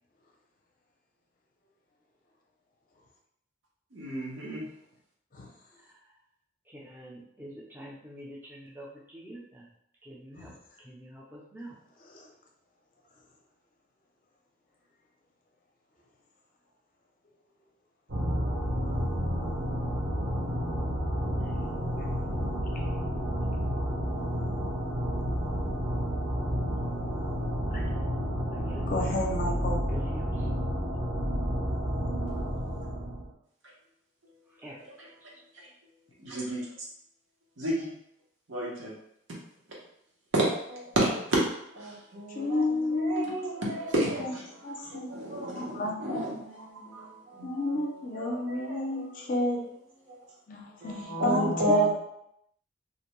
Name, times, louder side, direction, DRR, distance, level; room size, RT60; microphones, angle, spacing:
voice 1, 3.9-4.7 34.8-35.1 35.5-35.7 36.2-36.9 37.6-37.9 38.5-38.9 40.3-44.4 44.8-47.8 48.2-49.4 50.1-50.2 50.8-51.9, right 1 dB, 90° right, -3 dB, 0.9 m, -31 dB
voice 2, 6.7-9.7 10.0-10.5 10.8-11.8 28.5-29.3 29.9-30.5 34.6-34.8, equal, 10° right, -3 dB, 0.4 m, -46 dB
sound 1, 18.1-33.3, equal, 60° right, 0.9 m, -30 dB
voice 3, 28.9-29.8 42.3-43.4 44.2-44.3 44.6-45.2 45.6-46.4 47.4-49.6 50.5-51.9, left 2 dB, 45° left, 0 dB, 0.5 m, -31 dB
2.6 x 2.1 x 3.0 m, 0.76 s
head